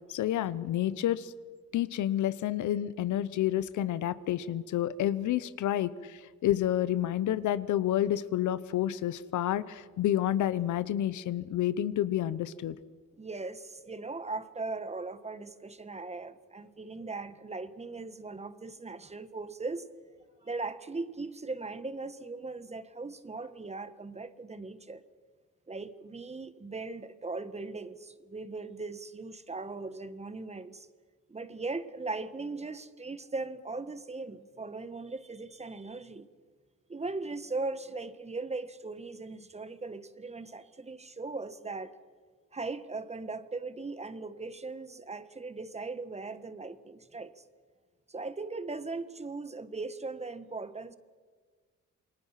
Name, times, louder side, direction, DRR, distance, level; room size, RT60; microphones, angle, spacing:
voice 1, 0.1-1.3 1.7-12.8, left 12 dB, 75° left, 16 dB, 0.9 m, -29 dB
voice 2, 13.2-19.9 20.4-25.0 25.7-30.9 31.3-36.3 36.9-41.9 42.5-47.4 48.1-51.0, right 3 dB, 20° right, 13 dB, 1.4 m, -39 dB
28.0 x 21.0 x 5.9 m, 1.5 s
cardioid pair, 90°, 30 cm